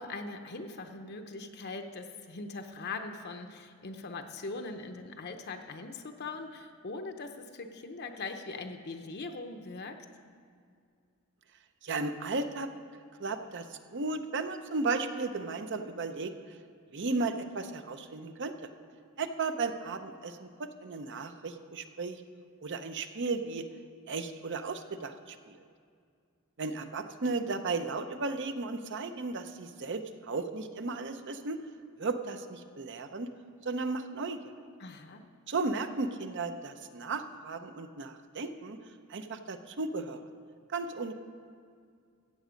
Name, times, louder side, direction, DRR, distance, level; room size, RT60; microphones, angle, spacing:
voice 1, 0.0-10.0 34.8-35.2, left 3 dB, 50° left, 6 dB, 0.7 m, -41 dB
voice 2, 11.8-12.7 13.2-16.3 16.9-18.7 19.2-22.2 22.6-23.7 24.1-25.6 26.6-31.6 32.0-33.3 33.6-34.4 35.5-38.8 39.1-40.2 40.7-41.1, right 3 dB, 55° right, 8 dB, 0.7 m, -35 dB
14.5 x 8.1 x 5.1 m, 2.2 s
head